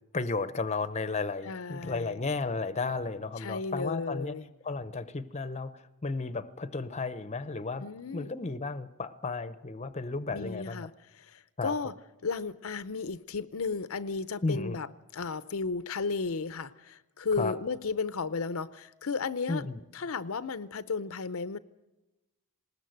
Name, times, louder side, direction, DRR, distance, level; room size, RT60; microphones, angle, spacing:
voice 1, 0.1-4.3 4.6-7.9 8.1-10.9 11.6-11.8 14.4-14.8 17.4-17.5 19.5-19.8, left 3 dB, 30° left, 13 dB, 0.7 m, -33 dB
voice 2, 1.4-2.2 3.4-4.5 7.8-8.3 10.3-11.9 12.2-14.9 15.1-19.6 19.9-21.6, left 4 dB, 65° left, 14 dB, 0.6 m, -34 dB
20.0 x 19.0 x 7.9 m, 1.0 s
head